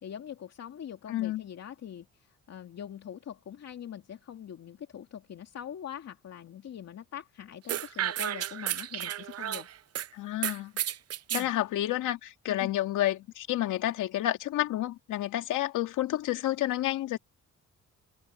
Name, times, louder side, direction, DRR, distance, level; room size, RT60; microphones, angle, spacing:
voice 1, 0.0-9.7 11.3-11.5 12.5-12.7, left 9 dB, 60° left, 2.7 m, -43 dB
voice 2, 1.1-1.4 10.1-10.7 11.3-17.2, left 14 dB, 85° left, 2.5 m, -30 dB
sound 1, 7.7-10.1 10.4-11.5, right 11 dB, 55° right, 0.7 m, -32 dB
cardioid pair, 90°, 30 cm